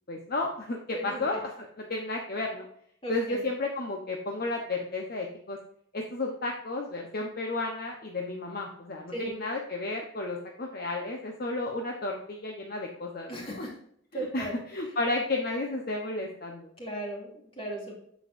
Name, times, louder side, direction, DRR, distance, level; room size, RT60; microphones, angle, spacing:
voice 1, 0.1-1.5 1.9-2.7 3.1-5.6 5.9-13.7 14.3-16.7, left 2 dB, 50° left, 1 dB, 1.0 m, -32 dB
voice 2, 0.9-1.4 3.0-3.4 9.1-9.3 13.3-13.7 14.1-14.5 16.8-18.0, right 1 dB, 30° left, -3 dB, 2.7 m, -36 dB
9.7 x 7.2 x 2.6 m, 0.68 s
head